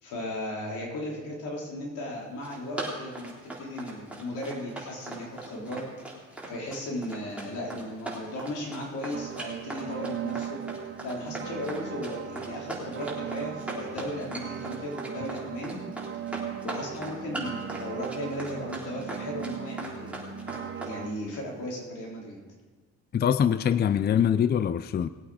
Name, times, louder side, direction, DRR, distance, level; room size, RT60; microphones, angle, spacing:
voice 1, 0.0-3.3 3.6-5.8 6.5-10.6 11.0-15.8 16.6-20.2 20.8-22.4, left 1 dB, 80° left, -2 dB, 3.8 m, -36 dB
Run, 2.2-21.0, right 2 dB, 5° right, 3.6 m, -39 dB
sound 1, 9.1-21.1, right 8 dB, 40° right, 1.0 m, -38 dB
voice 2, 23.1-25.1, left 8 dB, 35° left, 14 dB, 0.4 m, -23 dB
19.5 x 8.5 x 4.9 m, 1.4 s
cardioid pair, 90°, 30 cm